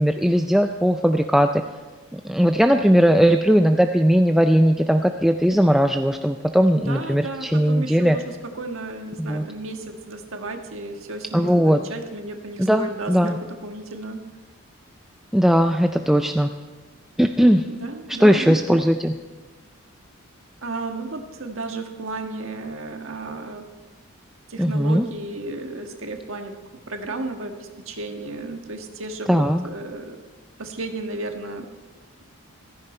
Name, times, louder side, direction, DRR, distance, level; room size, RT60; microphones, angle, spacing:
voice 1, 0.0-1.6 2.1-8.2 9.2-9.5 11.3-11.8 12.6-13.4 15.3-16.5 17.2-17.6 18.2-19.1 24.6-25.1 29.3-29.6, equal, ahead, 6 dB, 0.4 m, -18 dB
voice 2, 6.7-14.2 17.6-18.8 20.6-23.6 24.5-26.5 26.9-30.2 30.6-31.7, right 2 dB, 65° right, 4 dB, 1.6 m, -33 dB
15.5 x 14.5 x 4.4 m, 1.3 s
head